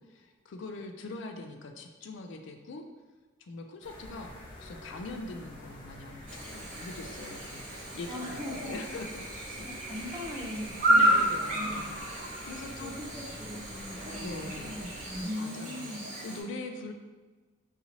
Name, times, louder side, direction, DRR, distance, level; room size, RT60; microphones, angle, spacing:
voice 1, 0.0-2.8 3.5-9.2 10.9-12.9 14.2-14.8 15.4-15.9 16.2-16.9, left 3 dB, 60° left, 5 dB, 0.4 m, -42 dB
sound 1, 3.8-15.2, left 1 dB, 25° left, 0.9 m, -48 dB
Chirp tweet / Buzz, 6.3-16.4, right 1 dB, 40° right, 0.9 m, -32 dB
voice 2, 8.1-8.8 9.6-11.1 11.4-11.8 12.8-16.1, left 1 dB, 20° right, -1 dB, 0.5 m, -40 dB
4.0 x 2.7 x 2.9 m, 1.3 s
head